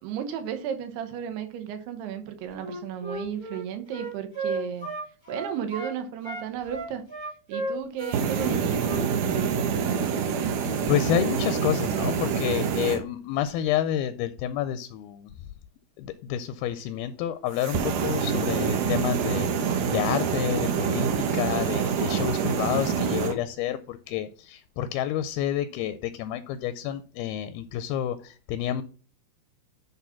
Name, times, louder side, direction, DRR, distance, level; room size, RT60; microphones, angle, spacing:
voice 1, 0.0-4.9 5.3-7.0 7.5-9.6, right 8 dB, 85° right, 3.1 m, -34 dB
Wind instrument woodwind instrument, 2.5-6.0 6.2-9.5, right 2 dB, 15° right, 0.9 m, -34 dB
sound 1, 8.0-13.0 17.5-23.3, right 6 dB, 65° right, 2.3 m, -26 dB
voice 2, 10.9-15.3 16.0-28.8, left 11 dB, 80° left, 2.3 m, -29 dB
10.5 x 3.7 x 5.7 m
omnidirectional pair, 4.6 m